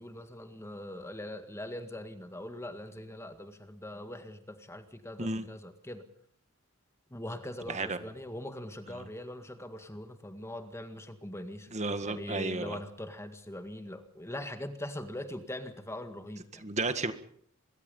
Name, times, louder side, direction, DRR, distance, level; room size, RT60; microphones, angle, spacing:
voice 1, 0.0-6.0 7.1-11.8 12.0-16.6, left 1 dB, 15° left, 8 dB, 1.9 m, -42 dB
voice 2, 7.7-8.0 11.7-12.8 16.6-17.1, right 3 dB, 35° right, 9 dB, 1.7 m, -32 dB
25.5 x 23.0 x 5.5 m, 0.64 s
head